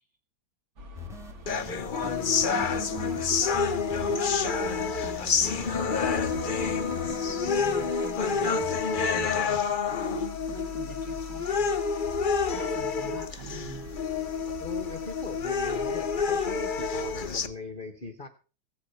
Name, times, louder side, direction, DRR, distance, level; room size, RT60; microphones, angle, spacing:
sound 1, 0.8-17.5, equal, 40° right, 1.4 m, -44 dB
sound 2, 0.9-9.6, left 5 dB, ahead, 1.7 m, -43 dB
sound 3, 1.5-17.5, left 5 dB, 75° left, 0.4 m, -28 dB
voice 1, 1.5-2.6 14.6-18.3, left 4 dB, 35° left, 1.0 m, -40 dB
voice 2, 2.5-11.8 12.5-13.9, right 3 dB, 60° right, 2.5 m, -43 dB
16.0 x 8.4 x 5.7 m
omnidirectional pair, 2.2 m